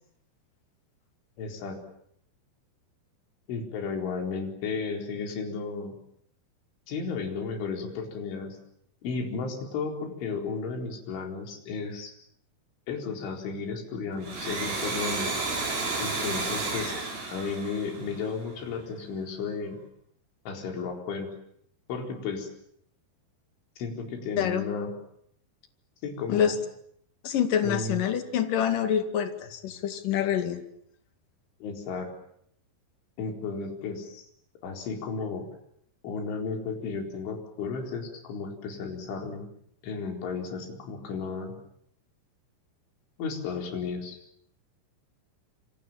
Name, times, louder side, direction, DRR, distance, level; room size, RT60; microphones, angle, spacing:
voice 1, 1.4-1.8 3.5-5.9 6.9-8.6 9.0-12.1 12.9-15.4 16.0-17.0 17.3-19.8 20.5-21.3 21.9-22.5 23.8-24.9 26.0-26.6 27.6-28.0 31.6-32.1 33.2-34.3 34.6-35.4 36.0-39.5 39.8-41.5 43.2-44.2, left 4 dB, 75° left, 3 dB, 6.7 m, -33 dB
Domestic sounds home sounds, 14.1-18.6, right 3 dB, 50° right, 7.1 m, -32 dB
voice 2, 24.4-24.7 26.3-26.5 27.2-30.6, left 9 dB, 50° left, 8 dB, 3.3 m, -26 dB
28.0 x 26.0 x 7.5 m, 0.70 s
omnidirectional pair, 5.5 m